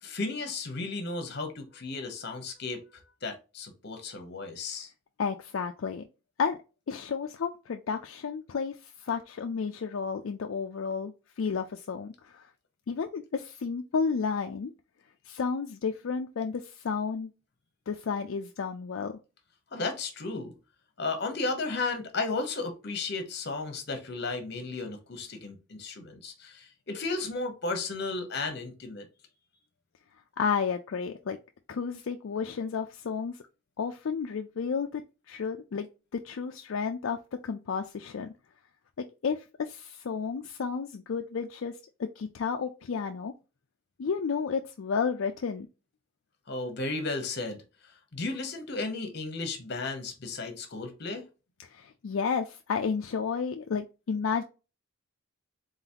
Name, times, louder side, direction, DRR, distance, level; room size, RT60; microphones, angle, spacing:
voice 1, 0.0-2.8 3.2-4.9 19.7-20.5 21.0-29.1 46.5-51.2, left 3 dB, 50° left, 1.0 m, -34 dB
voice 2, 5.2-6.0 6.4-6.6 6.9-12.5 12.9-14.7 15.3-17.3 17.9-19.2 30.4-31.4 31.7-33.4 33.8-35.0 35.3-35.9 36.1-37.2 37.4-38.3 39.0-43.3 44.0-45.7 51.6-54.4, left 5 dB, 70° left, 0.4 m, -32 dB
3.9 x 3.9 x 2.8 m
head